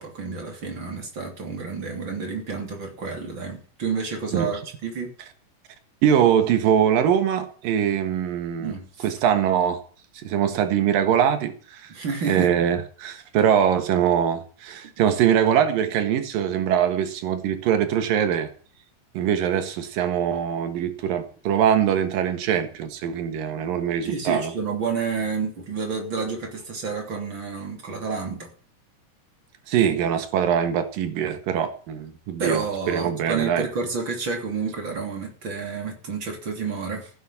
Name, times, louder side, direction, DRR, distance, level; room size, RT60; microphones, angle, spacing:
voice 1, 0.0-5.1 8.6-9.1 11.9-12.5 24.0-28.5 32.4-37.1, right 5 dB, 35° right, 3 dB, 3.5 m, -30 dB
voice 2, 6.0-8.7 9.0-9.8 10.2-11.9 12.3-18.5 19.1-24.5 29.7-33.7, right 9 dB, 90° right, 8 dB, 3.2 m, -22 dB
15.5 x 8.2 x 5.8 m, 0.41 s
omnidirectional pair, 3.8 m